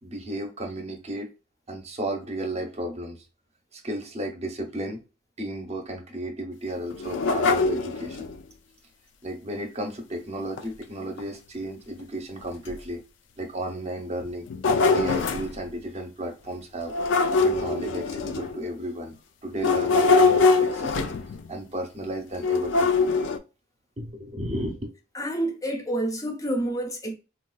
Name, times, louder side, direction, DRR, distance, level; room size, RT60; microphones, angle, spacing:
voice 1, 0.0-1.3 1.7-3.2 3.7-5.0 5.4-8.3 9.2-13.0 13.4-14.5 14.9-16.9 17.4-19.2 19.4-21.1 21.5-23.1 24.0-24.9, right 1 dB, 35° right, 0.7 m, -33 dB
sound 1, 6.9-8.4 10.6-10.7 11.2-11.3 12.0-12.1 12.7-12.8 14.2-15.5 16.9-18.7 19.6-21.5 22.4-23.4, left 4 dB, 65° left, 0.3 m, -23 dB
voice 2, 25.1-27.1, right 1 dB, 15° left, 0.5 m, -28 dB
3.8 x 2.3 x 2.3 m
head